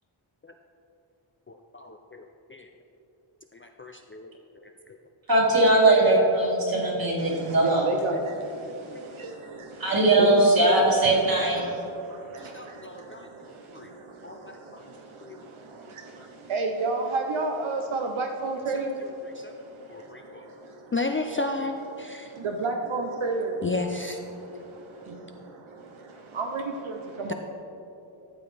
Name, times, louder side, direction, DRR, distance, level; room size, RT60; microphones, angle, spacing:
voice 1, 1.5-2.7 3.8-4.3 4.5-4.7 6.4-6.9 12.4-13.3 13.7-13.9 14.2-14.8 15.2-15.5 19.2-19.5 19.9-20.5 20.9-22.3 23.6-24.2, left 3 dB, 30° left, 3 dB, 0.4 m, -34 dB
voice 2, 5.3-7.9 9.8-11.6, right 2 dB, 45° right, -4 dB, 2.2 m, -20 dB
voice 3, 7.2-10.5 11.0-20.9 22.0-23.7 24.3-27.3, right 3 dB, 75° right, 3 dB, 0.8 m, -33 dB
13.0 x 7.8 x 3.3 m, 3.0 s
wide cardioid pair, 150°, 49 cm